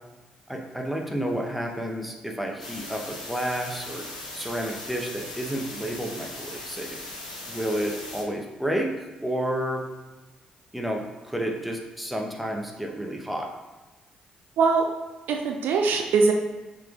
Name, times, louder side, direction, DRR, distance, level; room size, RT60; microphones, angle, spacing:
voice 1, 0.5-4.1 4.3-7.0 7.5-9.9 10.7-13.5, right 1 dB, ahead, 1 dB, 0.8 m, -30 dB
sound 1, 2.6-8.2, left 2 dB, 85° left, 0.5 m, -39 dB
voice 2, 14.6-14.9 15.3-16.3, right 4 dB, 60° right, 2 dB, 0.4 m, -21 dB
5.7 x 3.8 x 2.4 m, 1.1 s
figure-of-eight pair, 40°, 4 cm